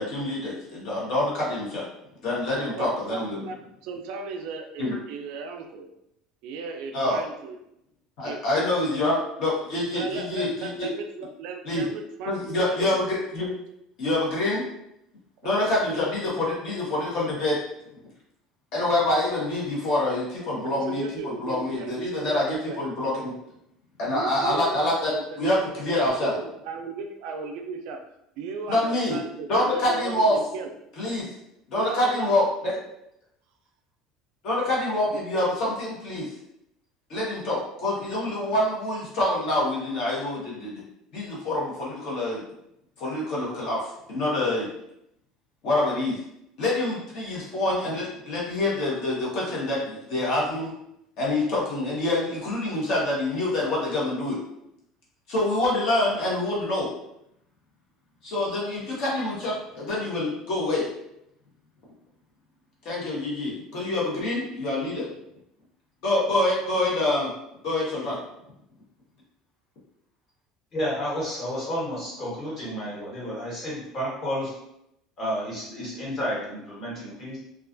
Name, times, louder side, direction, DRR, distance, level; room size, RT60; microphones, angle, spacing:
voice 1, 0.0-1.8 2.2-3.4 4.8-4.9 6.9-7.2 8.2-10.9 11.6-11.8 12.3-13.5 14.0-14.6 15.4-17.5 18.7-23.3 24.0-25.1 25.4-26.3 28.7-29.2 29.5-30.4 31.0-31.3 31.7-32.7 34.4-36.3 37.1-40.8 41.1-42.4 43.0-44.7 45.6-46.2 46.6-50.7 51.2-54.4 55.3-56.9 58.2-60.9 62.8-65.1 66.0-67.3 67.6-68.2, left 1 dB, 55° left, -5 dB, 0.9 m, -26 dB
voice 2, 2.6-3.6 3.8-5.9 6.4-7.6 8.2-8.7 9.9-13.1 15.4-16.0 20.4-22.8 24.1-25.6 25.9-28.0 28.4-30.7 31.8-32.3 35.1-35.2, right 4 dB, 65° right, 4 dB, 0.3 m, -36 dB
voice 3, 70.7-74.5 75.2-77.4, equal, 35° left, -7 dB, 1.2 m, -31 dB
2.3 x 2.3 x 2.4 m, 0.80 s
cardioid pair, 160°, 0 cm